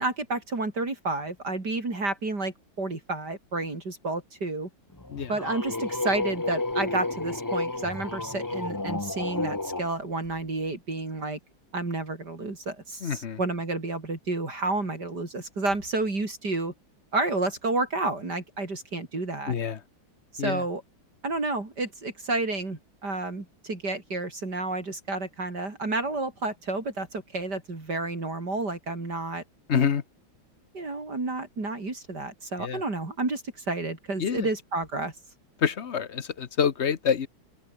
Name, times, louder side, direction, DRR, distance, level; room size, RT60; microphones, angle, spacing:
voice 1, 0.0-4.7 5.3-11.4 11.7-16.7 17.1-19.5 20.3-20.8 21.2-29.4 30.7-35.1, right 2 dB, 55° right, 5.2 m, -30 dB
sound 1, 5.0-9.9, left 2 dB, 15° left, 0.8 m, -31 dB
voice 2, 13.0-13.4 19.5-19.8 20.4-20.6 29.7-30.0 32.6-32.8 34.2-34.5 35.6-37.3, left 7 dB, 40° left, 1.1 m, -27 dB
open air
omnidirectional pair, 2.2 m